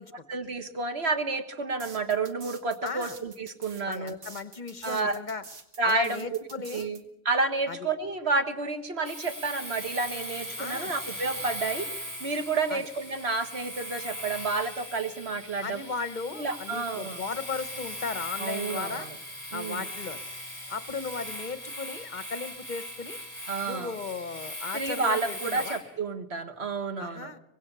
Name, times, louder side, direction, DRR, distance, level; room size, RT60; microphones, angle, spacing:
voice 1, 0.3-4.2 4.8-5.2 5.8-6.3 6.7-7.0 7.3-11.9 12.2-15.8 16.4-17.2 18.4-19.1 19.5-19.9 23.5-24.0 24.7-27.3, right 3 dB, 50° right, 7 dB, 1.8 m, -30 dB
sound 1, 1.8-7.0, right 4 dB, 85° right, 2.2 m, -47 dB
voice 2, 2.8-3.2 3.9-5.4 5.8-6.9 7.7-7.9 10.6-10.9 12.7-12.8 15.6-19.1 19.5-20.2 20.7-23.2 23.7-25.8 27.0-27.4, left 4 dB, 40° left, 13 dB, 1.0 m, -36 dB
Domestic sounds home sounds, 9.0-25.9, equal, 15° right, 6.4 m, -39 dB
24.5 x 20.0 x 6.9 m, 0.85 s
omnidirectional pair, 1.4 m